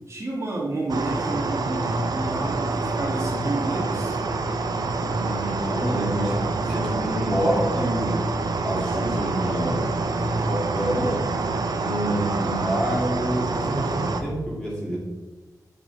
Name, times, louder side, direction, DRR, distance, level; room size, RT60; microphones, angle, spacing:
voice 1, 0.1-4.2 10.1-10.5, right 1 dB, 40° right, -5 dB, 1.8 m, -30 dB
sound 1, 0.9-14.2, right 3 dB, 75° right, 0.6 m, -27 dB
voice 2, 5.1-9.8 10.5-11.2 11.8-15.0, right 1 dB, 10° left, -5 dB, 2.3 m, -27 dB
7.0 x 5.4 x 3.9 m, 1.2 s
wide cardioid pair, 130°, 7 cm